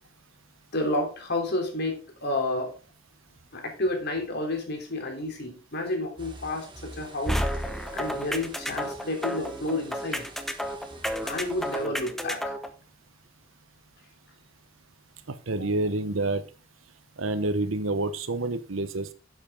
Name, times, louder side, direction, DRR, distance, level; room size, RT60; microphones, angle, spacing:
voice 1, 0.7-2.7 3.5-7.4 7.9-10.3 11.2-12.6, left 2 dB, 55° left, 3 dB, 3.1 m, -30 dB
sound 1, 6.2-11.9, right 2 dB, 25° right, 1.7 m, -47 dB
sound 2, 7.3-12.7, equal, ahead, 0.9 m, -31 dB
voice 2, 7.7-8.1 15.3-16.4 17.2-19.1, right 2 dB, 80° right, 12 dB, 1.0 m, -28 dB
10.5 x 7.8 x 3.6 m, 0.33 s
head